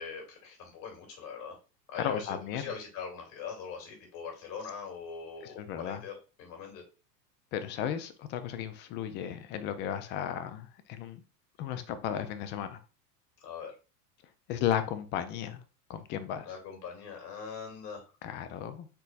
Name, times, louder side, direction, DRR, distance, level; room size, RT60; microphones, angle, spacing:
voice 1, 0.0-1.6 1.9-6.8 13.4-13.7 16.5-18.0, left 6 dB, 50° left, 2 dB, 2.3 m, -42 dB
voice 2, 2.0-2.7 5.4-6.0 7.5-11.2 11.6-12.8 14.5-15.6 15.9-16.5 18.2-18.9, left 9 dB, 25° left, 11 dB, 0.3 m, -34 dB
4.5 x 3.9 x 2.5 m, 0.33 s
hypercardioid pair, 95°, 50 cm